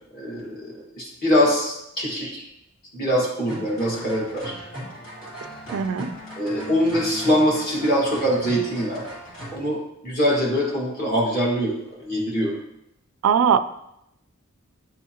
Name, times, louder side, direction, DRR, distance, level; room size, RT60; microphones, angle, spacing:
voice 1, 0.1-2.4 2.9-4.5 6.4-9.1 9.5-12.6, equal, 45° left, -4 dB, 1.8 m, -23 dB
sound 1, 3.5-9.6, equal, 75° left, 2.3 m, -38 dB
voice 2, 5.7-6.1 13.2-13.6, right 7 dB, 80° right, 10 dB, 0.3 m, -19 dB
9.2 x 3.6 x 2.9 m, 0.81 s
head